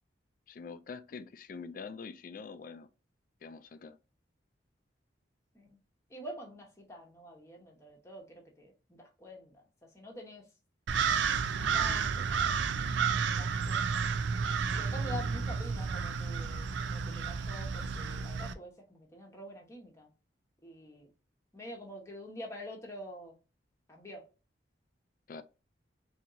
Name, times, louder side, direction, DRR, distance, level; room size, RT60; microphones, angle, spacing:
voice 1, 0.5-2.9 3.4-4.0 25.3-25.4, left 5 dB, 45° left, 0.3 m, -45 dB
voice 2, 6.1-8.7 9.2-9.6 9.9-10.4 11.5-12.6 13.4-14.0 14.7-20.1 20.6-21.1 21.5-23.3 23.9-24.2, equal, 15° left, 1.0 m, -46 dB
sound 1, 10.9-18.5, right 6 dB, 75° right, 0.4 m, -31 dB
4.3 x 2.8 x 2.6 m
head